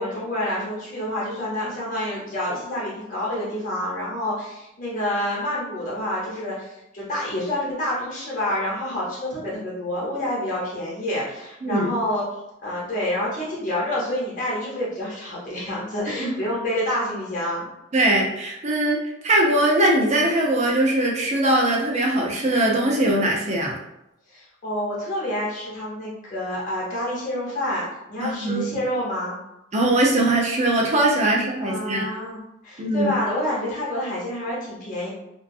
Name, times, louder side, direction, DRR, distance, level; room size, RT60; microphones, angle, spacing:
voice 1, 0.0-12.2 12.6-17.7 24.3-29.4 31.6-35.1, left 1 dB, 40° left, -6 dB, 0.9 m, -28 dB
voice 2, 17.9-19.0 19.2-23.7 28.2-28.7 29.7-32.1 32.8-33.1, right 1 dB, 35° right, -2 dB, 0.5 m, -21 dB
2.4 x 2.2 x 2.6 m, 0.87 s
head